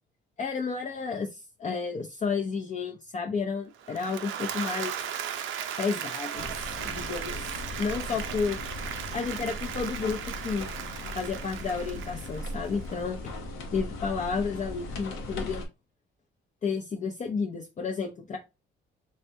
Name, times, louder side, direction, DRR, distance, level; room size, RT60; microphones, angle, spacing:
voice 1, 0.4-5.0 5.8-6.5 6.8-8.6 9.1-10.7 11.1-13.2 13.7-15.7 16.6-18.4, left 5 dB, 35° left, 0 dB, 0.6 m, -31 dB
Applause / Crowd, 3.8-12.9, right 9 dB, 80° right, 0.6 m, -37 dB
sound 1, 6.3-15.6, left 1 dB, 90° left, 1.0 m, -38 dB
3.4 x 3.2 x 2.7 m, 0.25 s
cardioid pair, 90°, 20 cm